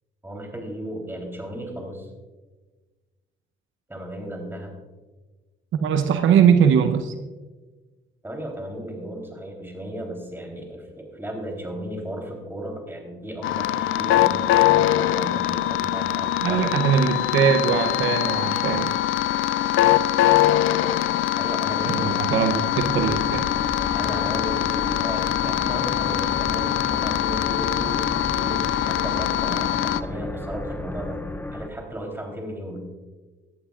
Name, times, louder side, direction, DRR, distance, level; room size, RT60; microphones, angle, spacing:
voice 1, 0.2-2.1 3.9-4.7 8.2-16.8 21.3-22.6 23.9-31.2 31.5-32.9, right 1 dB, 10° right, 2 dB, 3.6 m, -35 dB
voice 2, 5.7-7.1 16.4-19.0 21.9-23.5, right 7 dB, 75° right, 7 dB, 0.8 m, -21 dB
sound 1, 13.4-30.0, left 13 dB, 85° left, 0.4 m, -23 dB
sound 2, 22.7-31.7, left 2 dB, 10° left, 0.6 m, -33 dB
18.0 x 11.5 x 2.5 m, 1.3 s
cardioid pair, 90°, 20 cm